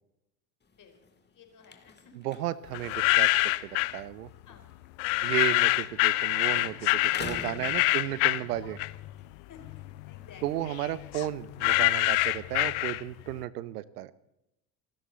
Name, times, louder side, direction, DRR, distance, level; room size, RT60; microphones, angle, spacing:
sound 1, 0.6-6.2 6.5-8.5 9.0-12.1, left 4 dB, 20° left, 2.4 m, -48 dB
voice 1, 1.3-2.3 4.5-4.9 7.9-8.1 8.5-8.6 9.5-9.8 10.1-10.4, left 7 dB, 40° left, 4 dB, 4.4 m, -53 dB
voice 2, 2.1-4.3 5.2-8.8 10.4-14.1, right 14 dB, 70° right, 19 dB, 0.9 m, -34 dB
sound 2, 2.7-4.0 5.0-9.2 9.6-13.3, left 22 dB, 55° left, 0.8 m, -26 dB
27.0 x 13.0 x 4.0 m, 0.87 s
figure-of-eight pair, 65°, 48 cm